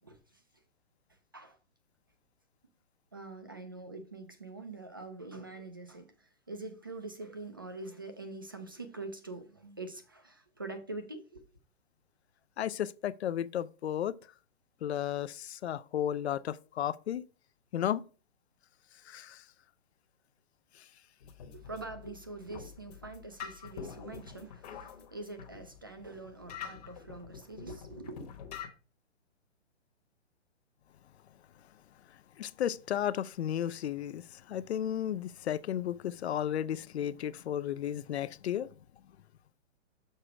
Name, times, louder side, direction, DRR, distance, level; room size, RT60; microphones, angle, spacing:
voice 1, 0.0-0.6 1.3-1.6 3.1-11.5 21.5-28.2, right 2 dB, 20° right, 0.4 m, -44 dB
voice 2, 12.6-14.1 14.8-17.2 17.7-18.0 19.1-19.4 32.4-38.7, left 10 dB, 65° left, 0.5 m, -33 dB
sound 1, 21.2-28.7, left 7 dB, 35° left, 1.1 m, -46 dB
6.7 x 4.9 x 4.4 m
hypercardioid pair, 170°, 36 cm